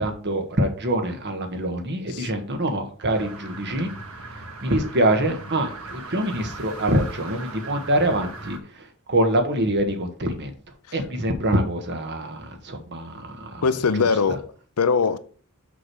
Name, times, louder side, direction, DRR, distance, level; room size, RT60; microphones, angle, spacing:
voice 1, 0.0-3.9 4.6-10.5 10.9-13.6 14.0-14.1, right 1 dB, 50° right, 1.4 m, -25 dB
sound 1, 3.1-8.6, right 3 dB, 75° right, 1.4 m, -39 dB
voice 2, 13.6-15.2, left 5 dB, 90° left, 0.6 m, -22 dB
6.2 x 6.0 x 4.8 m
head